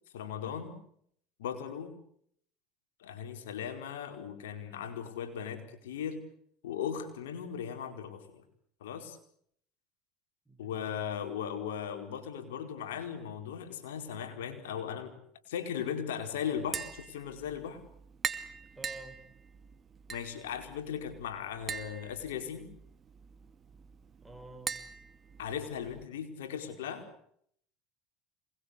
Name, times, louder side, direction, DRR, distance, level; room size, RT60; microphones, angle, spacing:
voice 1, 0.1-0.8 1.4-2.0 3.0-6.2 6.6-8.4 8.8-9.2 10.6-15.1 15.5-17.8 20.1-22.7 25.4-27.1, left 8 dB, 90° left, 7 dB, 4.7 m, -38 dB
voice 2, 10.5-10.9 18.8-19.2 24.2-24.7 25.4-25.6, right 2 dB, 10° right, 7 dB, 5.7 m, -49 dB
Tap, 16.6-26.0, right 7 dB, 35° right, 2.4 m, -43 dB
28.0 x 21.0 x 8.3 m, 0.68 s
supercardioid pair, 95°, 0 cm